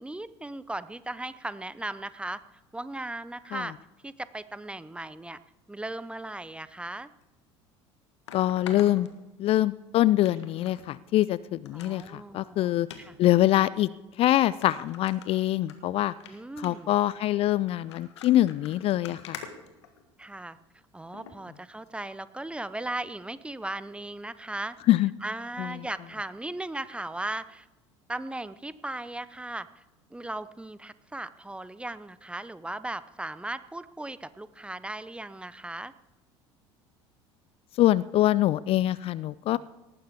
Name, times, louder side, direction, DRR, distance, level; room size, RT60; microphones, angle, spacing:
voice 1, 0.0-2.4 2.7-3.7 4.0-5.4 5.7-7.1 11.7-13.2 16.3-16.9 20.2-20.6 20.9-24.8 25.2-27.7 28.1-29.8 30.1-35.9, right 2 dB, 5° right, 15 dB, 0.7 m, -37 dB
sound 1, 7.2-7.3 8.3-9.7 10.2-10.8 11.2-11.3 11.6-12.1 12.8-13.0 13.8-13.9 14.2-14.3 14.6-15.8 16.1-16.3 16.6-16.9 17.7-20.4 21.1-21.4 21.9-22.0, left 7 dB, 70° left, 1.6 m, -45 dB
voice 2, 8.3-9.1 9.4-12.9 13.2-13.9 14.2-16.1 16.6-19.4 24.9-25.1 25.6-25.7 37.8-39.6, left 14 dB, 40° left, 19 dB, 0.4 m, -24 dB
18.5 x 14.5 x 3.6 m, 1.1 s
figure-of-eight pair, 70°, 15 cm